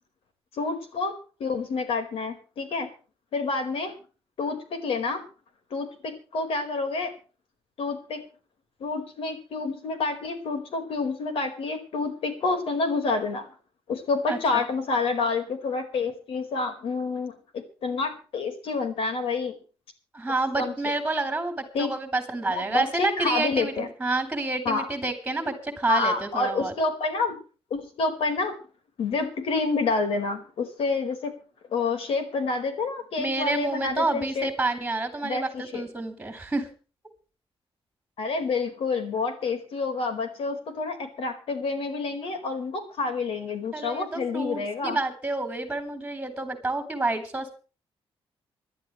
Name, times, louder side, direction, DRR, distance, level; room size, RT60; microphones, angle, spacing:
voice 1, 0.5-1.1 1.4-2.9 3.3-3.9 4.4-5.2 5.7-7.1 7.8-8.2 8.8-13.5 13.9-19.6 20.6-20.7 21.7-21.9 22.5-23.9 24.6-24.8 25.9-27.4 27.7-28.5 29.0-31.3 31.7-34.5 35.2-35.8 38.2-45.0, left 4 dB, 70° left, 7 dB, 4.6 m, -28 dB
voice 2, 14.3-14.6 20.1-26.7 33.2-36.7 43.7-47.6, right 2 dB, 10° right, 6 dB, 4.0 m, -29 dB
26.5 x 12.0 x 3.2 m, 0.37 s
wide cardioid pair, 150°, 10 cm